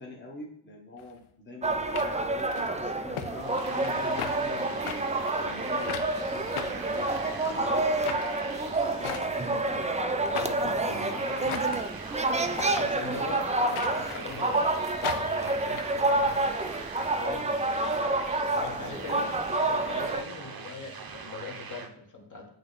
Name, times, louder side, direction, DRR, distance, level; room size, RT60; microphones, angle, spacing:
voice 1, 0.0-4.8 5.4-10.2 10.8-11.4 18.5-19.1, left 2 dB, 25° left, -3 dB, 1.2 m, -44 dB
sound 1, 1.0-1.1 1.9-2.7 3.2-3.3 3.6-4.4 4.9-5.0 5.9-6.1 6.6-7.4 8.0-8.3 9.0-9.5 10.3-10.7 11.5-11.9 12.5-12.9 13.8-14.4 15.0-15.8, left 8 dB, 80° left, 0.8 m, -36 dB
sound 2, 1.6-20.2, right 2 dB, 15° right, 0.4 m, -28 dB
sound 3, 3.3-21.9, right 5 dB, 45° right, 0.8 m, -43 dB
voice 2, 10.3-12.0 12.6-14.7 15.1-16.5 17.2-17.5 18.6-22.5, left 4 dB, 40° left, 0 dB, 1.4 m, -41 dB
8.7 x 3.0 x 4.0 m, 0.74 s
wide cardioid pair, 105°, 49 cm